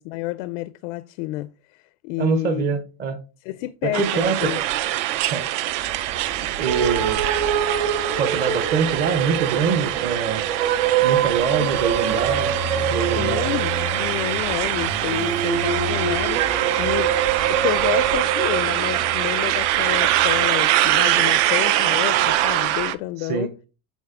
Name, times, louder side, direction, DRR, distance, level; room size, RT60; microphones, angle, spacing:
voice 1, 0.0-2.7 3.4-4.6 11.6-11.7 13.1-17.2 17.5-23.5, left 17 dB, 90° left, 0.5 m, -29 dB
voice 2, 2.2-3.2 3.8-4.6 5.2-5.5 6.6-7.3 8.2-10.5 11.0-12.5 12.9-13.5 23.3-23.5, right 6 dB, 25° right, 0.6 m, -24 dB
sound 1, 3.9-22.9, right 14 dB, 70° right, 0.6 m, -23 dB
Motorcycle, 5.7-22.9, equal, 50° right, 2.1 m, -36 dB
sound 2, 6.7-18.7, right 8 dB, 90° right, 1.3 m, -25 dB
8.1 x 4.1 x 3.6 m
cardioid pair, 180°, 37 cm